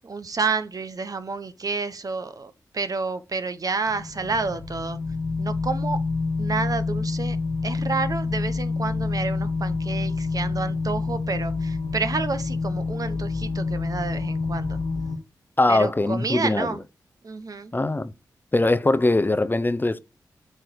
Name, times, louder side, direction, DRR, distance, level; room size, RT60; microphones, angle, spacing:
voice 1, 0.0-5.0 5.4-6.0 6.4-7.4 7.6-14.8 15.7-16.8 17.2-17.7, right 4 dB, 50° right, 0.9 m, -29 dB
sound 1, 3.8-15.2, left 3 dB, 85° left, 2.0 m, -27 dB
voice 2, 15.6-16.7 17.7-18.1 18.5-20.0, left 2 dB, 25° left, 0.6 m, -21 dB
7.7 x 3.3 x 4.6 m
cardioid pair, 45°, 8 cm